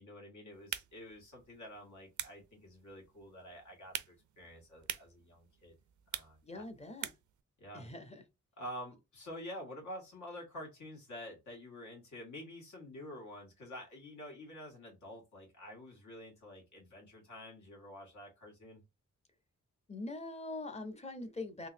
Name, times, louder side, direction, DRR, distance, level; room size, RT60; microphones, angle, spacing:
voice 1, 0.0-5.8 6.1-6.7 7.6-7.9 8.6-18.8, left 1 dB, 80° left, 2.0 m, -48 dB
sound 1, 0.5-7.4, right 11 dB, 80° right, 0.5 m, -46 dB
voice 2, 6.4-7.1 7.7-8.2 19.9-21.7, left 2 dB, 20° left, 0.7 m, -43 dB
3.9 x 2.8 x 2.6 m
wide cardioid pair, 130°, 29 cm